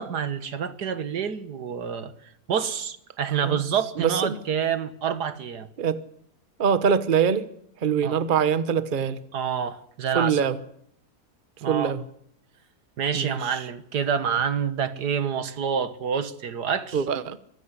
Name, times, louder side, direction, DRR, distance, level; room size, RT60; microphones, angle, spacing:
voice 1, 0.0-2.1 2.5-5.7 8.0-8.2 9.3-10.4 11.6-11.9 13.0-17.0, right 7 dB, 75° right, 1.9 m, -27 dB
voice 2, 4.0-4.4 5.8-6.0 6.6-7.5 7.8-9.2 10.1-10.6 11.7-12.0 13.1-13.6 16.9-17.4, right 7 dB, 35° right, 1.0 m, -23 dB
24.0 x 16.0 x 8.3 m
omnidirectional pair, 1.7 m